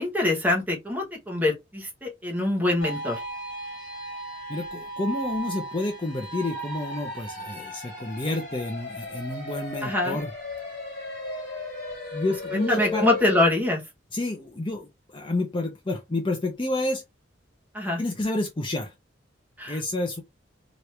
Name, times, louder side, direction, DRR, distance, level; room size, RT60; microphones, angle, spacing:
voice 1, 0.0-3.2 9.8-10.2 12.5-13.8 17.7-18.0 19.6-19.8, left 1 dB, 10° right, 1.0 m, -24 dB
sound 1, 2.8-13.4, left 1 dB, 45° left, 1.7 m, -35 dB
voice 2, 4.5-10.3 12.1-13.1 14.1-17.0 18.0-18.9 19.7-20.2, left 2 dB, 25° left, 0.6 m, -29 dB
3.0 x 2.6 x 3.2 m
head